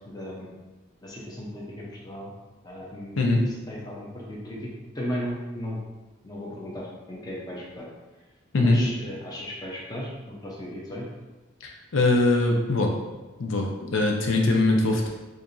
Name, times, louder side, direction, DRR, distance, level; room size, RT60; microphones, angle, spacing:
voice 1, 0.1-0.5 1.0-2.3 2.6-5.8 6.2-7.9 8.6-11.0, equal, 20° left, -4 dB, 0.6 m, -36 dB
voice 2, 3.2-3.5 8.5-8.9 11.6-12.9 13.4-15.1, left 2 dB, 80° left, 1 dB, 0.5 m, -22 dB
4.6 x 2.5 x 2.6 m, 1.1 s
head